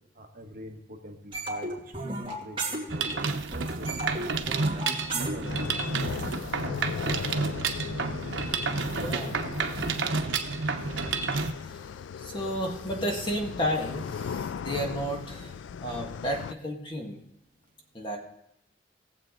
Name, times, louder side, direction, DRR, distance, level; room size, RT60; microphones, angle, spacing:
voice 1, 0.1-4.3 4.8-6.2, equal, 50° right, 3 dB, 1.2 m, -44 dB
sound 1, 1.3-3.3 3.5-6.3, right 2 dB, 30° right, 2.4 m, -34 dB
Mechanisms, 2.9-11.5, right 4 dB, 85° right, 0.8 m, -30 dB
sound 2, 5.4-16.5, left 7 dB, 85° left, 0.3 m, -38 dB
voice 2, 9.0-9.4 11.5-11.9 12.2-17.2 17.9-18.2, equal, 25° left, 1 dB, 1.8 m, -32 dB
19.0 x 7.5 x 3.9 m, 0.80 s
head